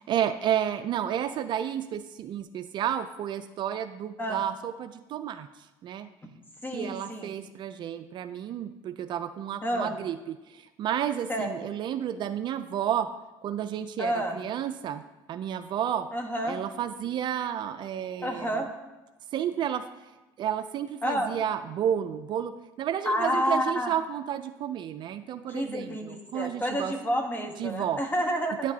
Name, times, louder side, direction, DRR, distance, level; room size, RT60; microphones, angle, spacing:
voice 1, 0.0-5.5 5.8-6.1 6.7-13.1 13.4-15.0 15.3-16.1 16.4-18.6 19.3-19.8 20.4-26.9 27.6-28.0 28.6-28.7, right 10 dB, 50° right, 10 dB, 0.4 m, -31 dB
voice 2, 6.6-7.3 9.6-10.0 11.3-11.7 14.0-14.4 16.1-16.6 18.2-18.7 21.0-21.3 23.0-23.9 25.5-28.6, equal, 20° left, 3 dB, 1.2 m, -29 dB
9.7 x 5.1 x 2.7 m, 1.1 s
supercardioid pair, 95°, 10 cm